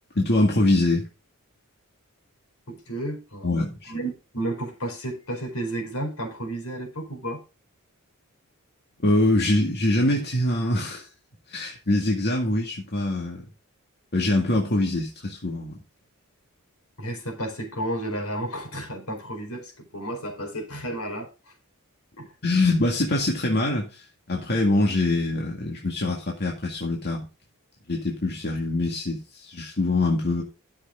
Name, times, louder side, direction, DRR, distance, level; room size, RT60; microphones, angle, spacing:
voice 1, 0.2-1.1 3.4-3.9 9.0-11.1 11.5-13.4 14.1-15.8 22.4-27.3 27.9-30.4, left 2 dB, 50° left, 2.1 m, -24 dB
voice 2, 2.7-3.5 3.9-7.4 17.0-21.3 22.2-22.3, right 1 dB, 70° left, 4.5 m, -32 dB
12.5 x 7.2 x 3.8 m
head